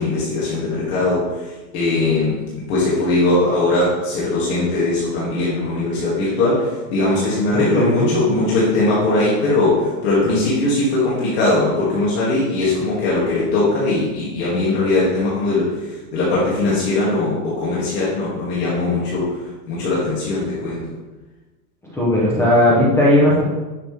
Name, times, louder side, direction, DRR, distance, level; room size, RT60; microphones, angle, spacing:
voice 1, 0.0-2.3 2.7-19.3 19.7-20.9, left 2 dB, 40° left, -8 dB, 2.6 m, -20 dB
voice 2, 7.5-8.2 21.8-23.4, left 1 dB, 5° left, -5 dB, 0.7 m, -16 dB
10.5 x 6.6 x 3.5 m, 1.2 s
supercardioid pair, 170°, 48 cm